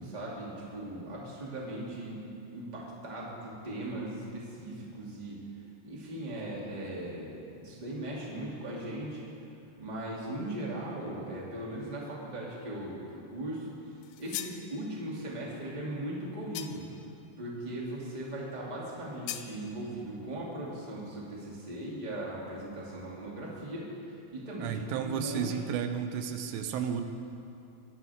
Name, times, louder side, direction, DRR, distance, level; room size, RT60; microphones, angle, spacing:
voice 1, 0.0-2.2 2.5-5.4 5.8-9.2 9.8-13.7 14.2-16.8 17.4-25.7, right 1 dB, 15° right, -5 dB, 2.0 m, -38 dB
sound 1, 14.0-14.6 16.5-17.0 19.3-19.5, left 12 dB, 80° left, 2.6 m, -39 dB
voice 2, 24.6-27.0, right 8 dB, 85° right, 7 dB, 2.9 m, -32 dB
23.5 x 11.5 x 3.6 m, 2.6 s
omnidirectional pair, 4.9 m